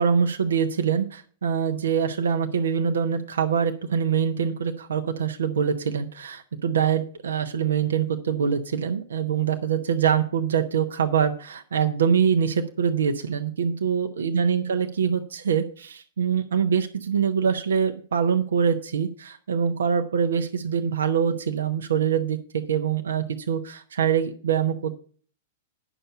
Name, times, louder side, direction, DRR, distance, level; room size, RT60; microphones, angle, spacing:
voice 1, 0.0-25.0, right 7 dB, 70° right, 6 dB, 0.9 m, -24 dB
10.0 x 6.7 x 5.5 m, 0.43 s
figure-of-eight pair, 100°, 0 cm